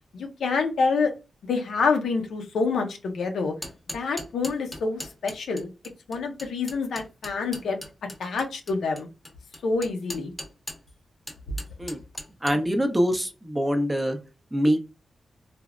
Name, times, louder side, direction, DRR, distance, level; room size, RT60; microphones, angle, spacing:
voice 1, 0.1-1.1 1.4-3.5 3.9-5.7 6.1-7.8 8.2-9.1 9.6-10.3, left 4 dB, 90° left, 4 dB, 0.6 m, -27 dB
sound 1, 3.4-10.9 11.3-12.6, left 1 dB, 10° left, 0.8 m, -39 dB
voice 2, 12.4-14.2 14.5-14.8, equal, 15° right, 7 dB, 0.6 m, -24 dB
3.3 x 2.0 x 2.4 m, 0.29 s
cardioid pair, 75°, 0 cm